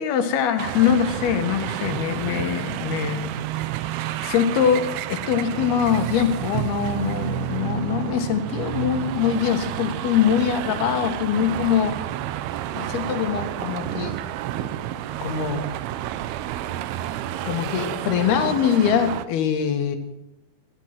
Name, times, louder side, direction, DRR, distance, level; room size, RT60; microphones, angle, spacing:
voice 1, 0.0-3.4 4.2-12.0 12.7-14.2 15.2-15.7 17.4-20.0, left 8 dB, 85° left, 7 dB, 3.5 m, -23 dB
sound 1, 0.6-19.3, right 13 dB, 90° right, 2.8 m, -30 dB
17.0 x 14.5 x 6.0 m, 0.89 s
omnidirectional pair, 4.4 m